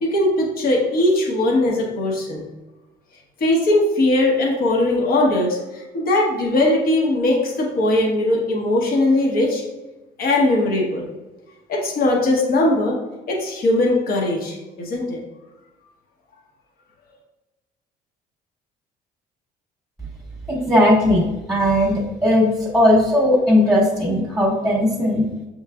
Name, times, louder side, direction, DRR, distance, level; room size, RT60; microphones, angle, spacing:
voice 1, 0.0-2.4 3.4-9.6 10.2-11.0 11.7-13.0 13.3-15.2, left 1 dB, 60° left, -1 dB, 1.1 m, -19 dB
voice 2, 20.5-25.3, left 1 dB, ahead, -3 dB, 1.2 m, -17 dB
6.4 x 3.1 x 2.4 m, 1.1 s
cardioid pair, 110°, 17 cm